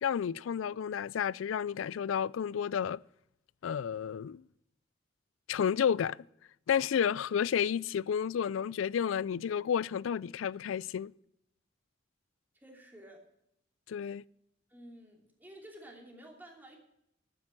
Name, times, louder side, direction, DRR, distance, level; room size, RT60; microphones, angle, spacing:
voice 1, 0.0-3.0 3.6-4.4 5.5-6.2 6.7-11.1 13.9-14.2, left 8 dB, 90° left, 0.3 m, -31 dB
voice 2, 12.5-13.2 14.7-16.8, right 1 dB, 10° right, 2.9 m, -52 dB
11.5 x 9.8 x 5.9 m
head